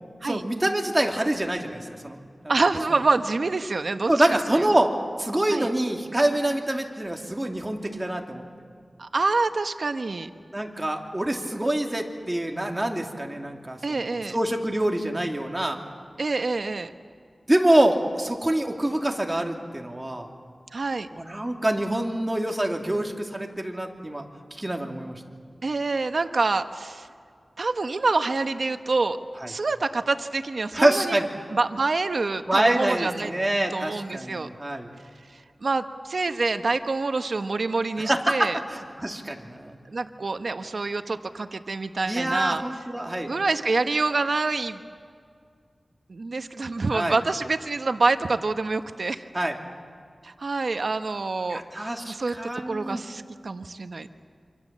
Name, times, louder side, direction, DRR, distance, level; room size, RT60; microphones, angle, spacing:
voice 1, 0.2-2.2 4.1-4.9 5.2-8.4 10.5-15.8 17.5-20.3 21.1-24.3 24.6-25.2 30.7-31.3 32.5-34.9 38.0-39.8 42.0-43.3 46.9-47.1 49.3-49.6 51.5-53.0, right 1 dB, 20° right, 2 dB, 2.6 m, -25 dB
voice 2, 2.5-4.1 4.5-4.6 5.5-5.7 9.0-10.3 13.8-14.3 16.2-16.9 20.7-21.1 25.6-27.1 27.6-29.2 29.5-31.2 31.5-33.3 33.7-34.5 35.3-38.6 39.9-42.6 43.3-44.8 46.1-49.2 50.2-52.4 52.7-54.1, right 3 dB, 70° right, 8 dB, 1.0 m, -26 dB
26.5 x 26.0 x 7.4 m, 2.1 s
wide cardioid pair, 75°, 0 cm